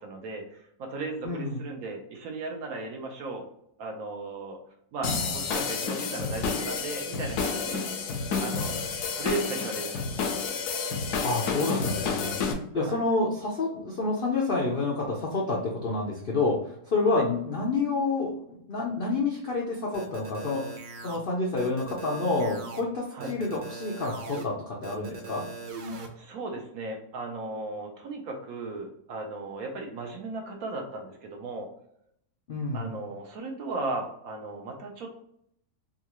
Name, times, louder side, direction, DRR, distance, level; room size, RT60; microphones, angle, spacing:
voice 1, 0.0-3.4 3.8-4.6 4.9-7.8 8.4-8.8 9.1-10.2 12.7-13.0 17.1-17.2 23.1-23.3 26.2-31.7 32.7-35.1, right 3 dB, 65° right, 2 dB, 1.1 m, -36 dB
voice 2, 1.2-1.7 11.2-12.3 12.7-20.6 21.0-25.5 32.5-32.9, left 3 dB, 60° left, -3 dB, 0.5 m, -28 dB
sound 1, 5.0-12.5, left 5 dB, 80° left, 1.2 m, -30 dB
sound 2, 19.9-21.2 21.6-22.8 23.2-24.4 24.8-26.1, right 3 dB, 85° right, 0.4 m, -40 dB
3.7 x 2.4 x 2.9 m, 0.71 s
omnidirectional pair, 1.7 m